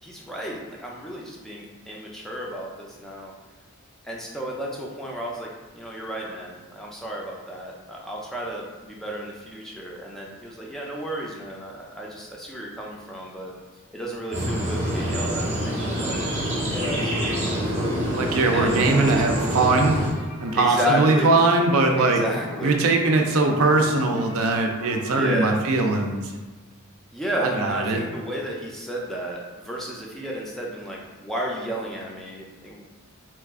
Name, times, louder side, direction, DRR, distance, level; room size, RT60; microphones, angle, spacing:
voice 1, 0.0-3.3 4.0-13.5 13.9-17.9 18.5-19.1 20.5-21.4 22.0-22.8 25.1-25.6 27.1-32.8, equal, ahead, -3 dB, 0.3 m, -32 dB
sound 1, 14.3-20.1, equal, 30° right, 0.7 m, -26 dB
sound 2, 14.6-25.3, left 1 dB, 80° left, 0.8 m, -39 dB
voice 2, 18.1-20.0 20.4-22.2 22.6-26.3 27.4-28.0, right 3 dB, 70° right, 3 dB, 0.4 m, -21 dB
2.9 x 2.4 x 3.5 m, 1.3 s
head